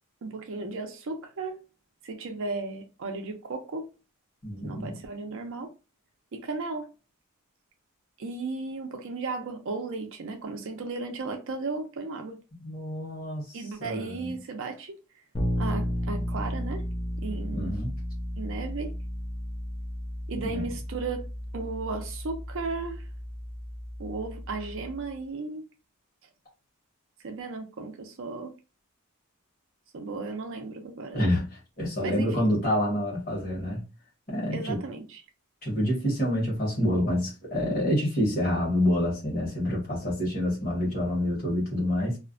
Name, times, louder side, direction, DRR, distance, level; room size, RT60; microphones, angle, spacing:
voice 1, 0.2-1.6 2.0-3.9 4.6-5.7 6.3-6.9 8.2-12.3 13.5-15.0 15.6-16.8 17.2-17.8 18.4-18.9 20.3-21.3 21.5-23.1 24.0-25.6 27.2-28.5 29.9-31.2 32.0-32.6 34.5-35.2, right 3 dB, 60° right, 0.5 m, -35 dB
voice 2, 4.4-5.0 12.6-14.4 17.5-17.9 20.3-20.7 31.1-33.8 34.3-34.8 35.6-42.2, left 1 dB, 40° left, 1.1 m, -27 dB
Bass guitar, 15.3-25.2, equal, 20° left, 0.5 m, -34 dB
2.4 x 2.1 x 2.5 m
head